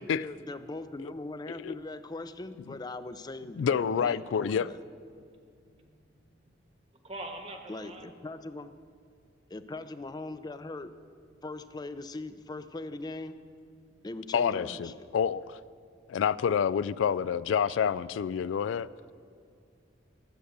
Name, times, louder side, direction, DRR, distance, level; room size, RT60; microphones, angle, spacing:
voice 1, 0.0-4.8 7.7-8.7 9.5-10.9 11.4-13.4 14.0-15.1, left 2 dB, 20° left, 12 dB, 0.4 m, -40 dB
voice 2, 3.6-4.7 14.3-15.6 16.1-18.9, left 7 dB, 85° left, 19 dB, 0.3 m, -28 dB
voice 3, 5.1-6.4 7.0-8.1 17.6-17.8, right 1 dB, 35° right, 3 dB, 1.3 m, -45 dB
13.0 x 7.9 x 6.7 m, 2.2 s
head